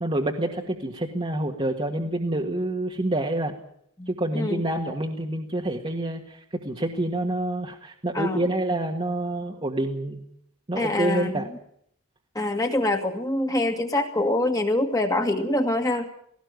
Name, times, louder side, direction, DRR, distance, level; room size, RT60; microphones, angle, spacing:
voice 1, 0.0-3.5 4.1-10.2 10.7-11.5, right 1 dB, 25° right, 1 dB, 1.6 m, -27 dB
voice 2, 4.0-4.6 8.1-8.5 10.8-11.5 12.3-16.1, left 2 dB, 15° left, 4 dB, 2.0 m, -25 dB
18.0 x 17.0 x 9.3 m, 0.69 s
head